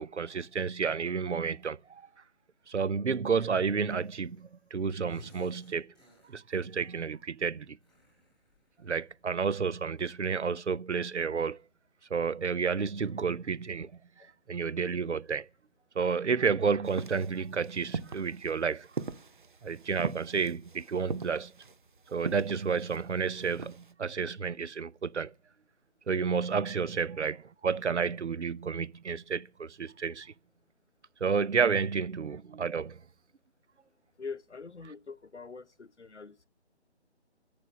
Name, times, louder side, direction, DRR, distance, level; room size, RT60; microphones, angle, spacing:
voice 1, 0.0-2.0 2.7-5.9 6.3-7.8 8.8-11.6 12.1-13.9 14.2-15.5 16.0-18.9 19.6-21.5 22.1-25.3 26.1-30.3 31.2-33.0, right 5 dB, 85° right, 0.6 m, -31 dB
sound 1, 3.9-4.6 4.8-6.8 7.8-9.3, left 2 dB, ahead, 1.6 m, -61 dB
sound 2, 16.8-23.9, right 4 dB, 45° right, 0.6 m, -41 dB
voice 2, 34.2-36.5, left 4 dB, 85° left, 0.9 m, -44 dB
14.0 x 5.1 x 9.2 m
figure-of-eight pair, 150°, 34 cm